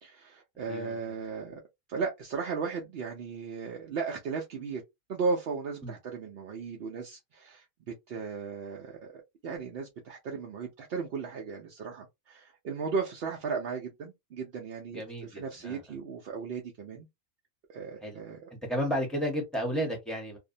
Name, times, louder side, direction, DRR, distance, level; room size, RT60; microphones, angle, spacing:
voice 1, 0.0-1.6 1.9-4.8 5.1-7.6 8.1-17.1 17.7-18.5, right 5 dB, 65° right, 0.6 m, -36 dB
voice 2, 0.7-1.0 5.8-5.9 14.9-15.8 18.0-18.2 18.7-20.4, equal, ahead, 0.8 m, -32 dB
2.6 x 2.1 x 2.6 m
omnidirectional pair, 1.5 m